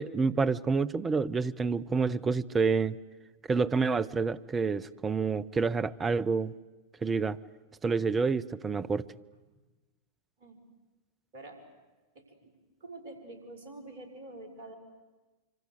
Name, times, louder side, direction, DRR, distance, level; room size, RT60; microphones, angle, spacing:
voice 1, 0.0-3.0 3.5-6.5 7.0-7.4 7.8-9.0, right 4 dB, 20° right, 16 dB, 0.8 m, -28 dB
voice 2, 12.2-12.5 12.8-14.8, right 2 dB, 50° right, 6 dB, 5.1 m, -46 dB
26.0 x 25.0 x 8.1 m, 1.2 s
figure-of-eight pair, 90°, 0 cm